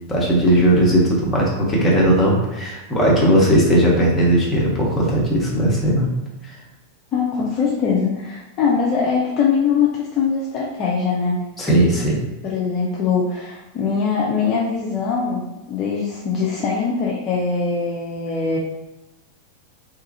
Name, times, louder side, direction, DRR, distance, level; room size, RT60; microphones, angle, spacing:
voice 1, 0.1-6.1 11.6-12.2, right 1 dB, 15° left, -5 dB, 0.9 m, -17 dB
voice 2, 7.1-11.4 12.4-18.6, left 5 dB, 35° left, -4 dB, 0.4 m, -22 dB
3.0 x 2.4 x 2.7 m, 1.0 s
figure-of-eight pair, 90°, 0 cm